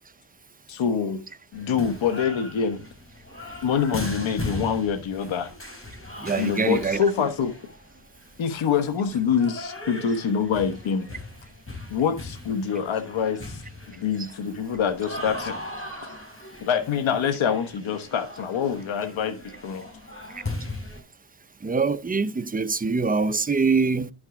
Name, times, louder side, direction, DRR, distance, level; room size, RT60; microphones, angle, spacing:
voice 1, 0.7-1.2 1.5-2.8 3.6-5.5 6.3-7.5 8.4-11.1 11.9-13.6 13.9-15.6 16.6-19.4 19.6-19.8, left 7 dB, 70° left, 1.3 m, -25 dB
sound 1, 1.5-21.0, left 2 dB, 25° left, 4.5 m, -38 dB
voice 2, 6.2-7.0 21.6-24.1, right 4 dB, 20° right, 0.6 m, -24 dB
11.0 x 6.3 x 3.8 m
cardioid pair, 85°, 49 cm